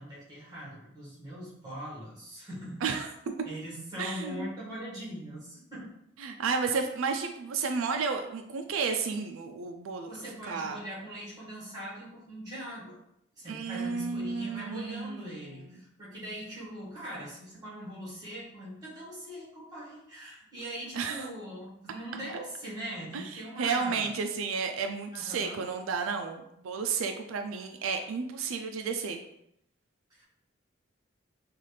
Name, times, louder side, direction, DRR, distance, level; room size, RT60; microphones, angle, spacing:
voice 1, 0.0-3.0 3.4-5.9 10.1-13.0 13.4-24.1 25.1-25.6 30.1-30.2, equal, 20° right, -6 dB, 1.5 m, -41 dB
voice 2, 4.0-4.5 6.2-10.8 13.5-15.8 20.9-21.3 23.1-29.2, right 5 dB, 90° right, 5 dB, 0.4 m, -32 dB
5.5 x 2.4 x 3.2 m, 0.78 s
head